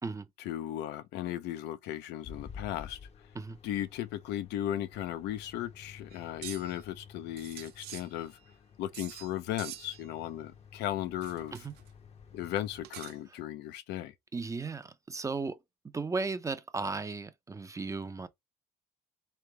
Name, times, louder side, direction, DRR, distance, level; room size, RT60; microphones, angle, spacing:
voice 1, 0.4-3.0 3.6-8.4 8.8-11.5 12.3-14.1, left 12 dB, 85° left, 0.6 m, -36 dB
sound 1, 2.2-12.9, left 6 dB, 40° left, 0.7 m, -52 dB
sound 2, 6.1-6.8 7.4-8.5 8.9-9.3 9.6-10.1 11.2-11.9 12.5-13.4, right 12 dB, 75° right, 0.6 m, -46 dB
voice 2, 14.3-15.6 15.9-18.3, right 4 dB, 20° right, 0.5 m, -35 dB
3.7 x 3.2 x 3.3 m
cardioid pair, 110°, 17 cm